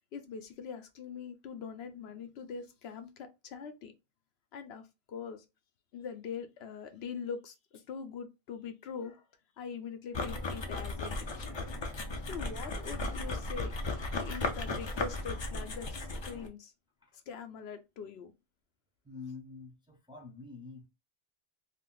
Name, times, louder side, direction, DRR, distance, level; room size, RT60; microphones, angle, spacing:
voice 1, 0.1-3.9 4.5-5.4 5.9-9.3 9.6-11.6 12.3-16.7 17.3-18.3, left 6 dB, 80° left, 0.8 m, -43 dB
sound 1, 10.1-16.5, left 2 dB, 45° left, 0.3 m, -36 dB
voice 2, 19.0-20.9, left 4 dB, 5° right, 0.6 m, -46 dB
2.5 x 2.0 x 3.8 m
omnidirectional pair, 1.1 m